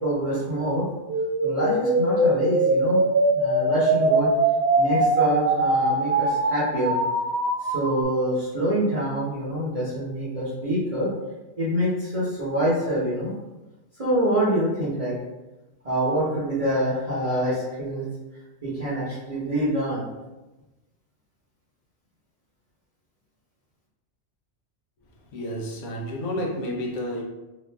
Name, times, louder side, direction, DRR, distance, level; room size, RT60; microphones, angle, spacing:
voice 1, 0.0-0.8 1.4-3.0 3.3-4.3 4.8-7.0 7.4-11.1 11.6-13.3 14.0-15.1 15.8-18.1 18.6-20.0, equal, 35° right, -9 dB, 0.8 m, -26 dB
sound 1, 1.1-8.0, right 2 dB, 65° right, 1.0 m, -22 dB
voice 2, 25.3-27.2, equal, 90° left, 0 dB, 1.0 m, -30 dB
3.0 x 2.5 x 3.3 m, 1.1 s
omnidirectional pair, 1.2 m